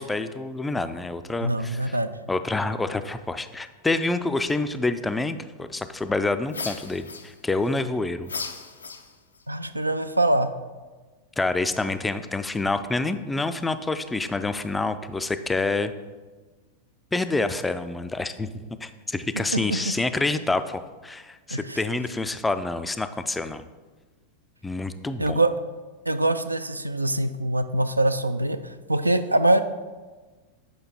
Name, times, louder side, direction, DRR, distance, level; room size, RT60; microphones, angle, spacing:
voice 1, 0.0-2.0 2.3-8.3 11.4-15.9 17.1-23.7 24.6-25.4, left 2 dB, 10° left, 11 dB, 0.3 m, -27 dB
voice 2, 1.4-2.2 9.5-10.5 19.5-19.9 21.5-21.8 25.2-25.5 26.1-29.6, right 1 dB, 85° right, 10 dB, 0.3 m, -24 dB
sound 1, 6.5-7.7 8.2-9.4, left 4 dB, 75° left, 0.5 m, -36 dB
7.8 x 5.0 x 2.8 m, 1.3 s
figure-of-eight pair, 90°, 0 cm